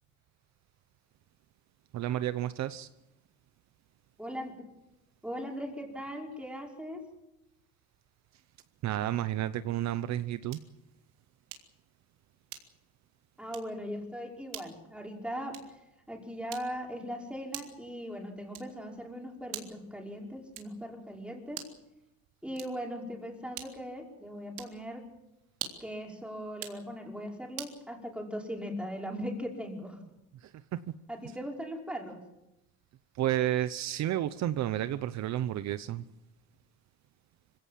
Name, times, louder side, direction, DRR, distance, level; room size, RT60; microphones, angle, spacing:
voice 1, 1.9-2.9 8.8-10.6 31.2-31.4 33.2-36.0, right 12 dB, 60° right, 13 dB, 0.9 m, -31 dB
voice 2, 4.2-4.7 5.2-7.0 13.4-15.7 16.1-21.6 22.4-25.0 25.8-30.0 31.1-32.2, equal, 5° right, 0 dB, 5.5 m, -39 dB
sound 1, 10.5-10.8 11.5-11.8 12.5-12.9 13.5-13.8 14.5-14.8 15.5-15.8 16.5-16.9 17.5-17.9 18.5-18.9 19.5-19.9 20.5-20.9 21.5-21.9 22.5-22.9 23.5-23.9 24.5-24.8 25.5-26.0 26.5-26.8 27.6-27.8, right 11 dB, 75° right, 3.6 m, -44 dB
26.5 x 17.0 x 7.6 m, 0.93 s
cardioid pair, 135°, 32 cm